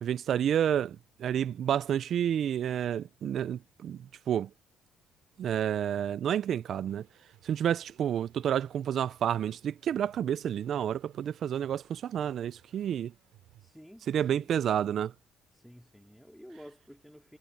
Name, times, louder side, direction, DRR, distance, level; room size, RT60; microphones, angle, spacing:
voice 1, 0.0-4.5 5.4-7.0 7.4-13.1 14.1-15.1, right 9 dB, 50° right, 0.3 m, -30 dB
sound 1, 6.8-13.7, right 14 dB, 90° right, 5.4 m, -63 dB
voice 2, 13.6-14.5 15.5-17.4, equal, ahead, 3.1 m, -52 dB
cardioid pair, 150°, 0 cm